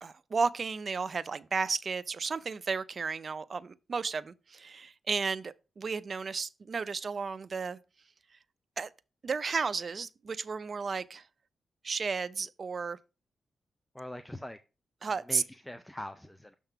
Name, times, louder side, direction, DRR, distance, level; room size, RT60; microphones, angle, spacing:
voice 1, 0.0-7.8 8.8-8.9 9.2-11.2 11.8-13.0 15.0-15.4, right 5 dB, 50° right, 0.5 m, -33 dB
voice 2, 13.9-14.6 15.3-16.5, left 1 dB, 5° left, 0.4 m, -42 dB
6.5 x 3.6 x 5.8 m
cardioid pair, 85°, 0 cm